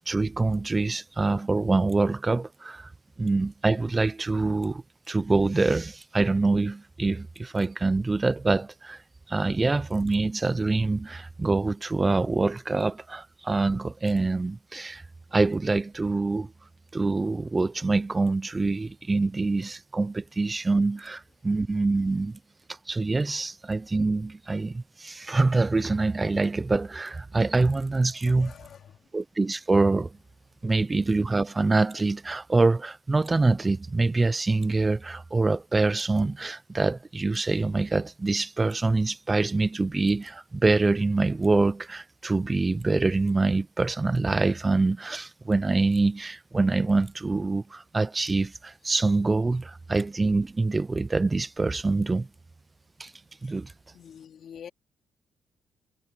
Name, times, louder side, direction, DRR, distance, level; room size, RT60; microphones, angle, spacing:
voice 1, 0.0-2.9 3.2-9.0 9.3-15.0 15.3-16.5 16.9-22.4 22.9-28.5 29.1-30.2 30.6-52.3 53.0-53.1 53.4-53.7, right 3 dB, 20° right, 0.6 m, -25 dB
voice 2, 28.1-29.1 30.5-30.7 53.4-53.6 53.9-54.7, left 8 dB, 60° left, 3.2 m, -46 dB
cardioid pair, 90°, 0 cm